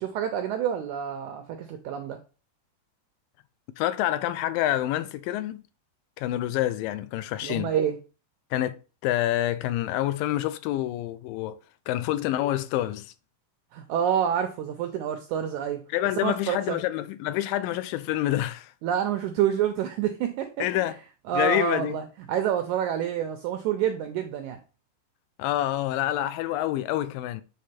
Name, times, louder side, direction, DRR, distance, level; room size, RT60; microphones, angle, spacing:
voice 1, 0.0-2.2 7.4-8.0 13.7-15.8 16.2-16.8 18.8-20.9 21.3-24.6, right 9 dB, 85° right, 1.7 m, -28 dB
voice 2, 3.8-5.6 6.2-7.7 8.5-8.8 9.0-11.6 11.9-13.1 15.9-18.7 20.6-21.0 21.3-22.0 25.4-27.4, left 13 dB, 85° left, 2.2 m, -27 dB
7.5 x 3.6 x 4.2 m
omnidirectional pair, 4.0 m